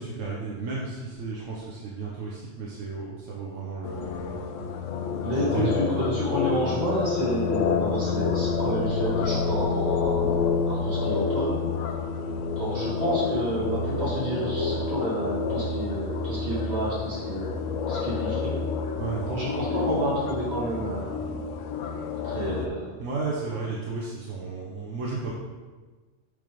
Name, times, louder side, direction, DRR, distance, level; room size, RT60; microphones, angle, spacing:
voice 1, 0.0-4.7 5.5-5.7 19.0-19.3 23.0-25.3, right 4 dB, 90° right, -4 dB, 1.2 m, -33 dB
Ben Shewmaker - Griffey Park Bird n' Plane, 3.8-22.7, left 5 dB, 85° left, 1.0 m, -28 dB
voice 2, 5.2-11.6 12.6-17.6 17.9-18.6 19.2-21.2 22.2-22.9, right 1 dB, 60° right, -8 dB, 2.5 m, -29 dB
6.8 x 3.4 x 5.1 m, 1.3 s
omnidirectional pair, 1.3 m